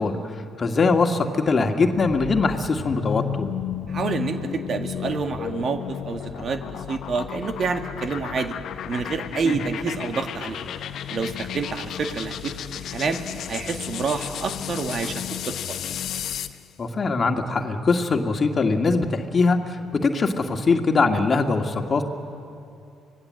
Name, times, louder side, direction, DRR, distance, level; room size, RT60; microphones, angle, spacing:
voice 1, 0.0-3.2 9.4-9.6 16.8-22.0, left 4 dB, 40° left, 5 dB, 1.9 m, -22 dB
sound 1, 1.9-16.6, left 10 dB, 60° left, 0.8 m, -33 dB
voice 2, 3.9-8.6 8.9-10.7 11.1-13.2 13.5-15.8, right 5 dB, 50° right, 6 dB, 1.8 m, -28 dB
26.0 x 18.5 x 7.7 m, 2.6 s
hypercardioid pair, 55°, 0 cm